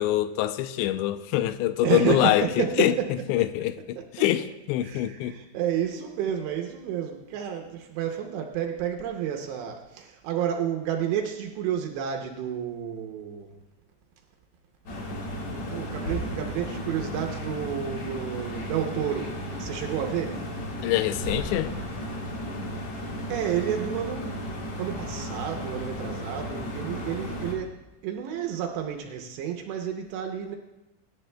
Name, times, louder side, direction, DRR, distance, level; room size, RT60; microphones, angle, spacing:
voice 1, 0.0-2.9 3.3-5.4 20.8-21.7, left 14 dB, 85° left, 2.8 m, -25 dB
voice 2, 1.8-3.1 4.0-4.1 4.8-13.6 15.7-20.4 22.9-24.3 24.8-27.7 28.0-30.6, right 9 dB, 80° right, 2.9 m, -30 dB
sound 1, 14.9-27.5, equal, 50° left, 2.3 m, -34 dB
24.0 x 10.5 x 2.2 m
omnidirectional pair, 5.1 m